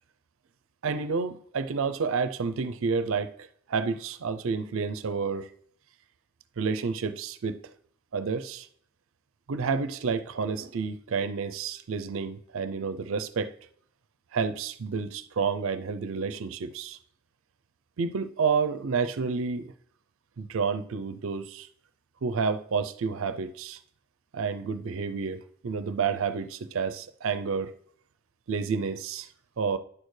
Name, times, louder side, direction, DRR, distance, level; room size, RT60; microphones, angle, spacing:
voice 1, 0.8-5.5 6.6-7.6 8.1-8.7 9.5-13.5 14.3-17.0 18.0-19.7 20.4-21.7 22.2-23.8 24.3-27.7 28.5-29.3 29.6-29.8, right 5 dB, 65° right, 11 dB, 0.5 m, -30 dB
9.8 x 6.5 x 3.2 m, 0.63 s
head